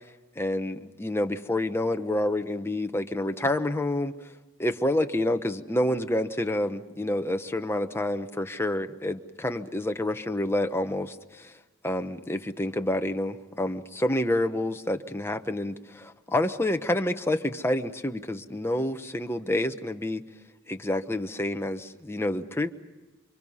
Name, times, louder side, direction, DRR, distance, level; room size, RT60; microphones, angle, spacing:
voice 1, 0.4-4.1 4.6-11.5 11.8-20.2 20.7-22.7, left 1 dB, 10° left, 6 dB, 0.9 m, -28 dB
28.5 x 25.0 x 5.6 m, 1.2 s
head